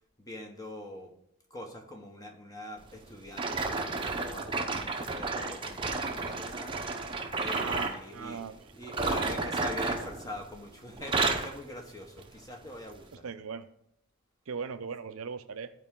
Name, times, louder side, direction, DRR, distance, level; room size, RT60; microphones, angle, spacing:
voice 1, 0.2-1.1 1.5-6.9 7.3-8.4 8.7-13.2, left 1 dB, 15° left, 2 dB, 1.2 m, -44 dB
sound 1, 3.3-8.0 8.8-10.6 10.9-11.6 12.2-12.4 13.0-13.1, right 3 dB, 25° right, 0.8 m, -32 dB
voice 2, 7.6-8.6 9.0-9.5 13.2-13.7 14.5-15.7, right 5 dB, 80° right, 11 dB, 0.6 m, -39 dB
13.5 x 4.9 x 3.7 m, 0.78 s
head